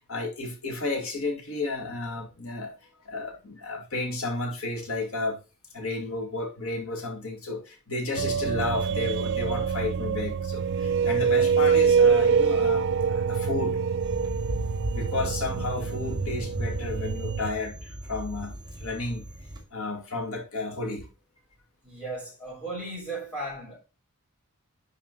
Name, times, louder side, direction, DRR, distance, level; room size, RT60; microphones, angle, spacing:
voice 1, 0.1-2.7 3.1-5.4 5.7-13.8 14.9-19.3 19.7-21.1, left 2 dB, 70° left, 2.3 m, -32 dB
sound 1, 8.2-17.5, right 6 dB, 55° right, 0.4 m, -25 dB
sound 2, 14.0-19.6, right 1 dB, 20° right, 1.9 m, -36 dB
voice 2, 21.8-23.7, right 2 dB, 5° left, 5.4 m, -36 dB
11.0 x 5.0 x 3.9 m
head